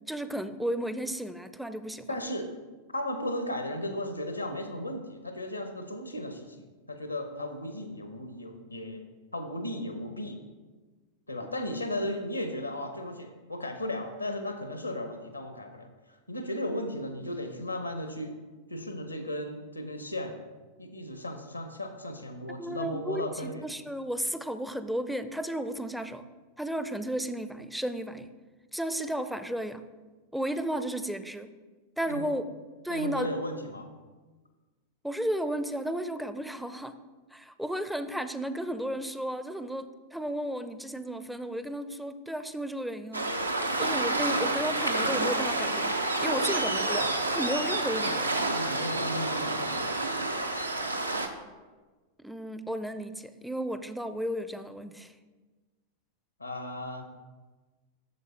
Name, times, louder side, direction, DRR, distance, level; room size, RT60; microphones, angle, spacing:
voice 1, 0.1-2.1 22.6-26.3 26.6-28.3 28.7-29.9 30.3-31.5 32.0-32.5 32.8-33.3 35.0-36.9 37.3-43.3 43.8-48.3 52.2-55.1, right 1 dB, ahead, 10 dB, 0.4 m, -33 dB
voice 2, 2.1-2.5 2.9-6.6 6.9-9.0 9.3-10.4 11.3-15.9 16.3-18.3 18.7-20.4 20.8-23.6 32.1-32.3 32.9-33.9 48.5-49.9 56.4-57.1, left 1 dB, 85° left, 6 dB, 0.8 m, -35 dB
Waves surf, 43.1-51.3, right 2 dB, 85° right, 0.6 m, -29 dB
8.3 x 6.8 x 3.3 m, 1.3 s
figure-of-eight pair, 90°, 0 cm